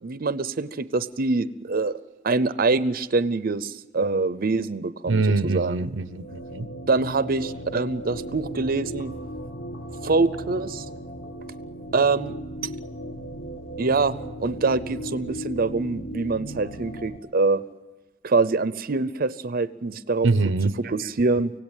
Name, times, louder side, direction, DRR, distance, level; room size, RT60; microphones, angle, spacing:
voice 1, 0.0-2.0 2.2-5.9 6.9-9.1 10.0-10.9 11.9-12.3 13.8-17.6 18.2-20.3 20.8-21.5, right 3 dB, 50° right, 14 dB, 0.7 m, -24 dB
voice 2, 5.1-6.7 20.2-20.7, right 3 dB, 90° right, 15 dB, 0.7 m, -23 dB
sound 1, 5.7-17.2, equal, 70° left, 1.7 m, -37 dB
24.5 x 17.0 x 9.0 m, 1.1 s
head